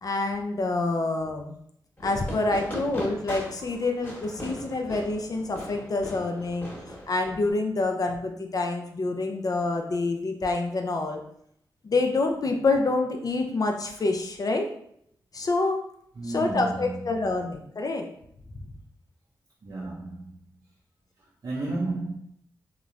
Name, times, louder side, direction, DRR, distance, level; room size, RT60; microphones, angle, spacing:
voice 1, 0.0-1.6 2.0-6.7 7.1-11.2 11.8-14.7 15.3-15.8 16.3-18.1, left 3 dB, 50° left, 0.4 m, -27 dB
Fireworks, 2.0-7.5, equal, 20° left, 1.1 m, -39 dB
voice 2, 16.2-17.0 19.6-20.4 21.4-22.1, right 2 dB, 55° right, 0.5 m, -32 dB
2.9 x 2.0 x 2.4 m
cardioid pair, 50°, 8 cm